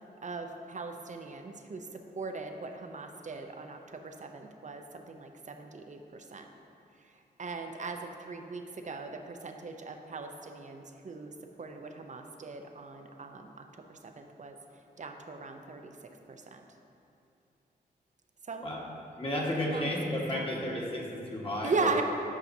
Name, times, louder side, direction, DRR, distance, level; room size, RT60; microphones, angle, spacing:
voice 1, 0.2-6.5 7.4-14.6 15.0-15.9 16.3-16.6 18.4-18.7 19.4-19.5 19.7-20.5 21.6-22.0, right 4 dB, 45° right, 5 dB, 0.6 m, -38 dB
voice 2, 19.2-21.9, left 1 dB, 30° left, -3 dB, 1.4 m, -32 dB
8.5 x 5.7 x 2.7 m, 2.7 s
cardioid pair, 60°, 18 cm